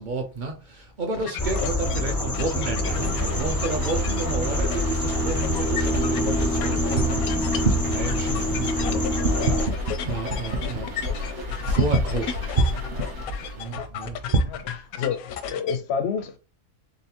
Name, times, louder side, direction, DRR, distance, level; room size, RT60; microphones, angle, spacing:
voice 1, 0.0-13.1 13.6-14.8, right 3 dB, 50° right, 0.6 m, -29 dB
sound 1, 1.1-15.8, left 8 dB, 80° left, 1.0 m, -35 dB
sound 2, 1.4-9.7, left 1 dB, 25° left, 0.3 m, -26 dB
sound 3, 2.8-13.9, left 2 dB, 80° right, 1.7 m, -33 dB
voice 2, 15.5-16.4, left 6 dB, 65° left, 0.7 m, -28 dB
4.0 x 3.6 x 2.8 m
omnidirectional pair, 1.5 m